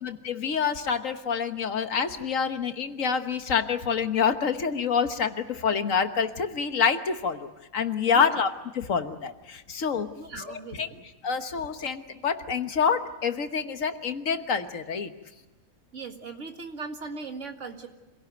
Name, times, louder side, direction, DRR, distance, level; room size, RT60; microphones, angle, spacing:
voice 1, 0.0-10.1 10.5-10.9 11.2-15.1, left 6 dB, 65° left, 8 dB, 1.6 m, -27 dB
voice 2, 8.1-8.5 10.2-11.1 15.9-17.9, right 4 dB, 55° right, 5 dB, 2.2 m, -39 dB
26.0 x 17.0 x 9.2 m, 1.1 s
omnidirectional pair, 1.5 m